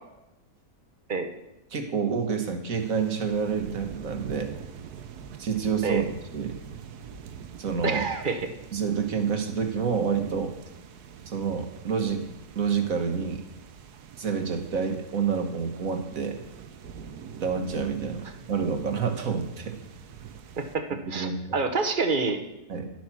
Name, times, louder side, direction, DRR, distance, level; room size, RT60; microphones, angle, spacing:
voice 1, 1.7-4.5 5.4-6.5 7.6-8.0 8.7-10.5 11.3-12.3 12.6-13.4 14.2-16.4 17.4-19.8 21.2-21.4 22.7-22.9, right 6 dB, 60° right, 5 dB, 1.7 m, -28 dB
sound 1, 2.7-20.8, right 7 dB, 90° right, 1.4 m, -45 dB
voice 2, 7.8-8.5 20.6-22.4, right 4 dB, 35° right, 6 dB, 1.1 m, -27 dB
12.0 x 9.0 x 6.0 m, 0.95 s
omnidirectional pair, 1.6 m